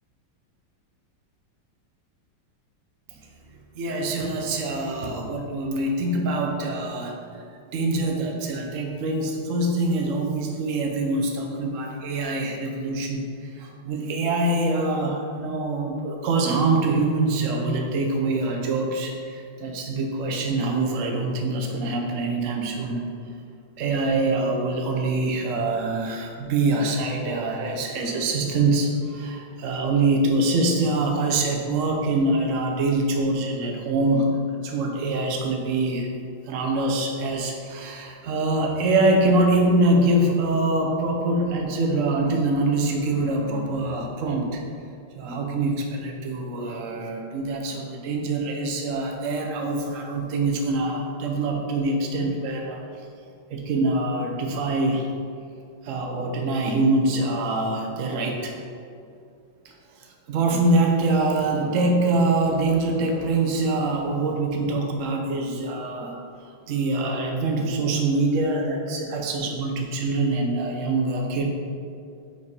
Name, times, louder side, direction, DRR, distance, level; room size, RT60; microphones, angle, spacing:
voice 1, 3.7-7.1 7.7-23.0 23.8-36.1 36.5-44.6 45.1-52.8 53.5-55.1 55.8-58.5 59.6-59.7 60.3-66.2 66.7-71.5, right 2 dB, 60° right, 1 dB, 0.8 m, -24 dB
4.9 x 4.8 x 5.3 m, 2.4 s
omnidirectional pair, 2.3 m